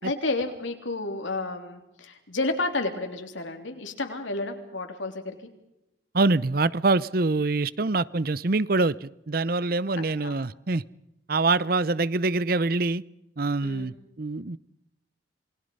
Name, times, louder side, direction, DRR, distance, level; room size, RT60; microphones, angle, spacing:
voice 1, 0.0-5.3 10.0-10.4 13.6-13.9, left 2 dB, 90° left, 5 dB, 3.4 m, -31 dB
voice 2, 6.1-10.8 11.3-13.0 13.4-14.6, right 3 dB, 50° right, 19 dB, 0.7 m, -25 dB
27.5 x 21.0 x 5.5 m, 0.87 s
head